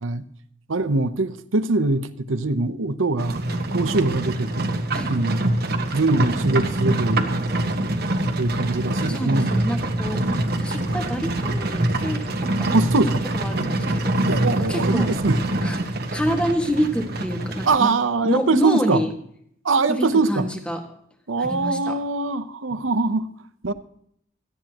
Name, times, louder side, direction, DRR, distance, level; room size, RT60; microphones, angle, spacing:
voice 1, 0.7-3.4 3.7-4.8 5.1-5.4 5.9-7.5 8.4-9.5 12.7-13.2 14.3-15.4 17.7-19.0 19.6-20.4 21.3-23.3 23.6-23.7, right 3 dB, 90° right, 0.8 m, -22 dB
Livestock farm animals working animals, 3.2-17.8, right 1 dB, 50° right, 1.4 m, -24 dB
voice 2, 9.1-10.2 10.6-12.7 13.3-14.2 14.6-15.1 15.6-17.9 18.2-19.1 19.9-20.8 21.4-22.0, equal, 5° left, 1.8 m, -27 dB
18.0 x 14.0 x 3.0 m
head